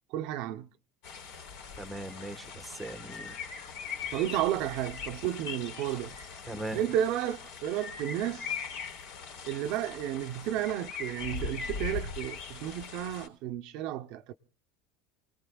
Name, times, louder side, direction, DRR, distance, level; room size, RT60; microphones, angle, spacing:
voice 1, 0.1-0.7 4.1-6.2 6.7-8.6 9.4-14.3, right 12 dB, 55° right, 0.7 m, -32 dB
sound 1, 1.0-13.3, left 6 dB, 70° left, 3.9 m, -40 dB
voice 2, 1.8-3.3 4.0-4.1 6.5-6.9, right 1 dB, ahead, 1.2 m, -40 dB
29.5 x 19.5 x 2.3 m
cardioid pair, 155°, 0 cm